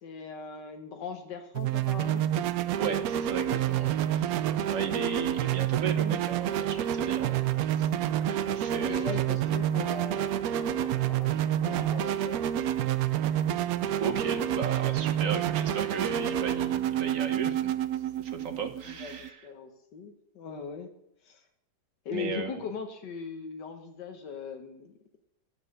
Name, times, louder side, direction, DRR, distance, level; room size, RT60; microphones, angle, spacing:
voice 1, 0.0-2.2 8.4-12.6 18.9-20.9 21.2-21.4 22.1-24.9, left 5 dB, 80° left, 5 dB, 1.8 m, -40 dB
sound 1, 1.6-19.3, right 11 dB, 70° right, 0.9 m, -28 dB
voice 2, 2.8-7.4 7.7-7.8 8.2-9.1 14.0-17.7 18.2-19.5 22.1-22.6, right 5 dB, 55° right, 6 dB, 1.3 m, -35 dB
9.8 x 6.7 x 6.6 m, 0.77 s
omnidirectional pair, 1.8 m